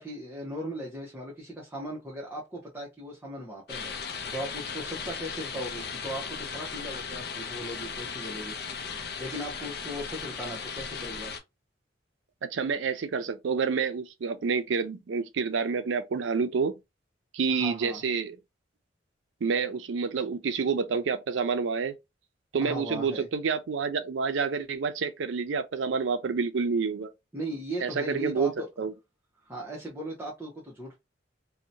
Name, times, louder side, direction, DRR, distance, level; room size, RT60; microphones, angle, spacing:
voice 1, 0.0-3.9 4.3-8.6 9.2-11.3 17.5-18.0 22.6-23.3 27.3-28.7 29.4-31.0, right 1 dB, 10° right, 0.7 m, -38 dB
sound 1, 3.7-11.4, left 6 dB, 60° left, 0.5 m, -37 dB
voice 2, 12.5-16.7 17.3-18.4 19.4-21.9 22.5-27.1 27.8-28.5 28.8-28.9, right 5 dB, 85° right, 0.4 m, -28 dB
2.7 x 2.1 x 2.6 m
head